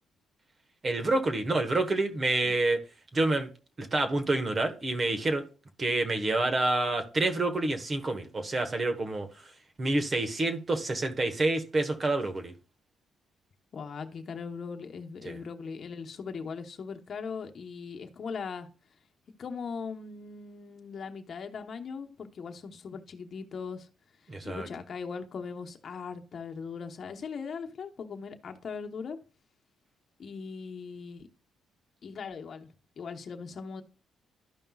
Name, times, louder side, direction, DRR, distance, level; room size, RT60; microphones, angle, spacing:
voice 1, 0.8-2.8 3.1-3.5 3.8-5.4 5.8-9.3 9.8-12.5 15.2-15.4 24.3-24.7, right 2 dB, 35° right, 1.2 m, -28 dB
voice 2, 13.7-18.7 19.4-23.9 24.4-29.2 30.2-31.3 32.0-33.8, left 5 dB, 50° left, 1.0 m, -39 dB
12.5 x 5.4 x 2.4 m
cardioid pair, 90°, 0 cm